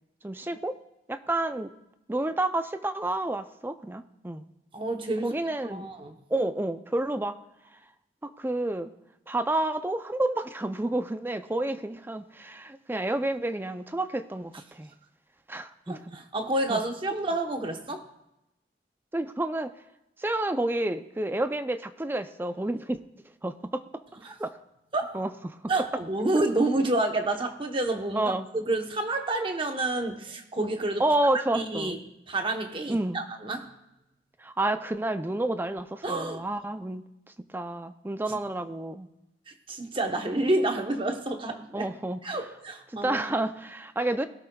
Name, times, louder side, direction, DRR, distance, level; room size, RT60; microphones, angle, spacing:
voice 1, 0.2-0.8 1.1-1.7 2.1-4.4 5.2-5.9 6.3-7.4 8.2-8.9 9.3-14.9 15.5-16.0 16.7-16.8 19.1-19.7 20.2-23.0 23.4-23.8 24.4-24.6 25.1-25.6 26.3-26.4 28.1-28.5 31.0-32.0 32.9-33.2 34.4-37.0 37.4-39.1 41.7-42.4 42.9-44.3, right 1 dB, 10° right, 9 dB, 0.4 m, -30 dB
voice 2, 4.7-5.3 5.7-6.1 15.9-18.0 24.2-24.4 24.9-25.2 25.7-31.0 31.5-32.0 32.3-33.7 36.0-36.4 39.7-41.9 42.2-43.2, right 2 dB, 30° right, 5 dB, 1.0 m, -29 dB
19.5 x 12.5 x 2.3 m, 0.91 s
head